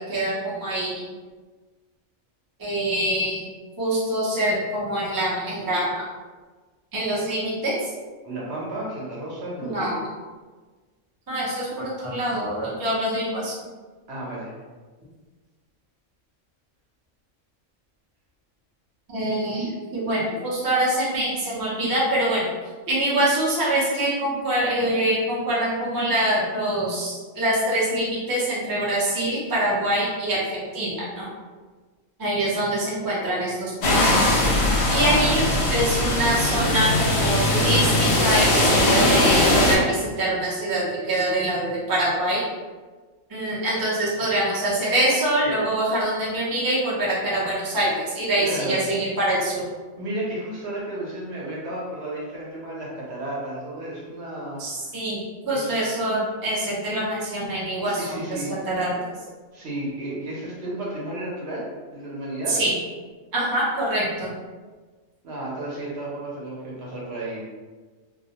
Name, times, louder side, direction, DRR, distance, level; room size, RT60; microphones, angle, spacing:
voice 1, 0.1-1.1 2.6-3.4 3.8-6.0 6.9-7.8 9.6-10.0 11.3-13.6 19.1-22.5 22.9-31.3 32.2-34.0 34.9-42.5 43.3-49.6 54.6-58.9 62.5-62.7 63.3-64.3, right 1 dB, 30° right, -7 dB, 0.3 m, -24 dB
voice 2, 8.2-10.0 14.1-14.6 34.8-35.8 48.4-48.7 50.0-54.6 55.5-55.9 57.8-58.5 59.5-62.5 65.2-67.4, right 1 dB, 60° right, -5 dB, 0.9 m, -32 dB
sound 1, 33.8-39.8, left 1 dB, 65° left, 0.7 m, -20 dB
2.3 x 2.1 x 2.7 m, 1.4 s
omnidirectional pair, 1.4 m